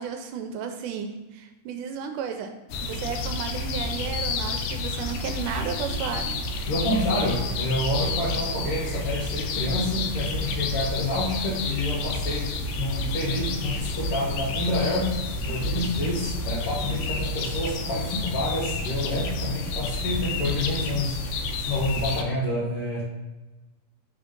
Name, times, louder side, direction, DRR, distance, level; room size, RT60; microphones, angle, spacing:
voice 1, 0.0-2.5 2.8-6.3, right 6 dB, 80° right, 6 dB, 2.0 m, -33 dB
sound 1, 2.7-22.2, left 2 dB, 90° left, 2.3 m, -30 dB
voice 2, 6.7-15.1 15.4-23.0, left 1 dB, 65° left, -6 dB, 1.5 m, -28 dB
5.1 x 3.6 x 5.0 m, 1.1 s
omnidirectional pair, 3.7 m